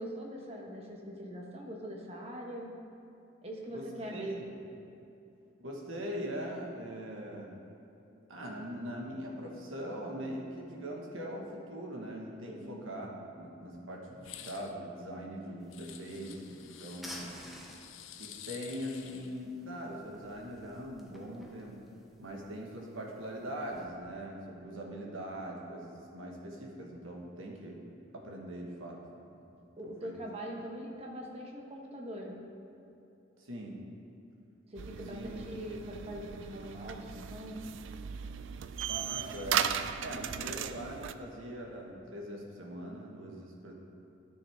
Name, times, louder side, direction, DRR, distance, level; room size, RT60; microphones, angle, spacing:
voice 1, 0.0-2.7 3.4-4.4 12.5-12.8 29.8-32.3 34.7-37.6, equal, 30° right, -1 dB, 1.2 m, -42 dB
voice 2, 3.7-4.5 5.6-7.5 8.3-17.3 18.2-21.8 22.2-27.8 28.1-29.0 29.3-29.4 29.8-30.2 33.4-33.8 35.1-35.3 38.9-39.7 40.0-43.7, equal, 90° right, -1 dB, 1.5 m, -41 dB
sound 1, 14.2-14.7 15.7-17.0 17.6-19.4, left 10 dB, 75° left, 0.5 m, -49 dB
sound 2, 15.6-23.9, equal, ahead, 0.9 m, -53 dB
sound 3, 34.8-41.1, right 8 dB, 70° right, 0.3 m, -37 dB
13.0 x 6.4 x 3.6 m, 2.8 s
head